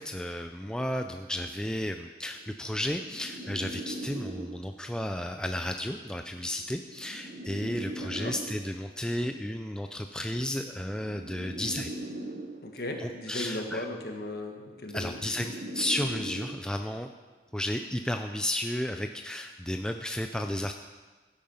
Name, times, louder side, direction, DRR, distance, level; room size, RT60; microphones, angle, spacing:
voice 1, 0.0-11.9 13.0-13.9 14.9-17.1 17.5-20.7, left 1 dB, 5° left, 5 dB, 0.4 m, -33 dB
sound 1, 1.8-4.9 5.9-8.9 9.9-12.9 13.9-16.9 17.9-18.3, right 1 dB, 50° right, 1.2 m, -41 dB
voice 2, 7.9-8.3 12.6-15.2, left 1 dB, 55° left, 2 dB, 1.8 m, -37 dB
16.0 x 8.8 x 5.6 m, 1.3 s
head